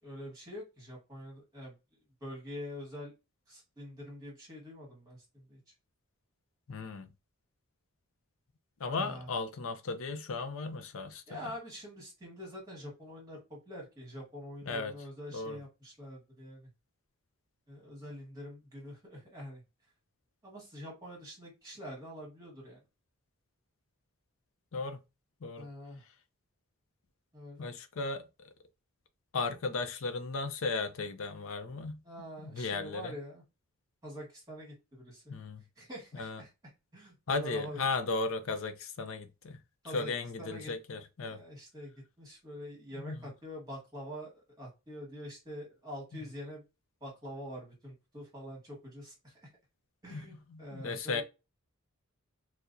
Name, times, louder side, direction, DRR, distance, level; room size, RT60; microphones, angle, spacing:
voice 1, 0.0-1.7 2.2-3.1 3.5-5.6 8.9-9.3 11.3-16.7 17.7-19.6 20.4-22.8 25.6-26.0 27.3-27.7 32.0-33.4 34.0-35.3 35.8-36.5 36.9-37.8 39.8-40.1 40.4-40.7 41.2-46.6 47.0-49.4 50.0-51.2, equal, 15° right, 1.5 m, -45 dB
voice 2, 6.7-7.1 8.8-11.5 14.7-14.9 15.3-15.6 24.7-25.0 25.4-25.7 27.6-28.2 29.3-32.0 32.4-33.1 35.3-35.6 36.1-36.4 37.3-39.6 39.9-41.4 42.9-43.2 50.1-51.2, left 3 dB, 65° left, 0.5 m, -35 dB
4.4 x 2.0 x 2.6 m
head